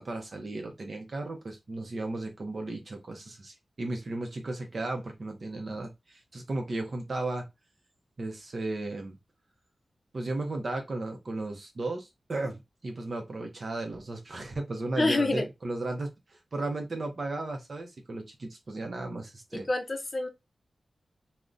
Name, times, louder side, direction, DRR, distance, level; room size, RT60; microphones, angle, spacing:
voice 1, 0.0-7.4 8.2-9.2 10.1-19.7, right 2 dB, 50° right, 0.6 m, -35 dB
voice 2, 15.0-15.4 19.7-20.3, left 2 dB, 35° left, 0.5 m, -26 dB
3.5 x 2.1 x 2.5 m
wide cardioid pair, 105°, 0 cm